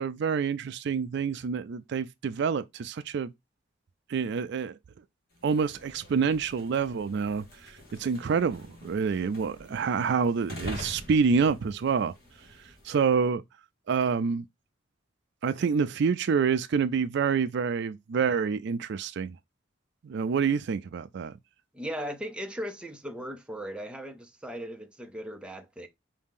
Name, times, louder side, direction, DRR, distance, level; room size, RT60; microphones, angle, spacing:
voice 1, 0.0-3.3 4.1-4.8 5.4-7.7 8.0-12.1 12.9-13.4 13.9-14.4 15.4-19.4 20.0-21.3, right 6 dB, 65° right, 0.4 m, -27 dB
sound 1, 5.3-13.2, equal, 55° left, 1.2 m, -45 dB
voice 2, 21.7-25.9, equal, 5° right, 0.5 m, -38 dB
4.8 x 2.7 x 3.6 m
head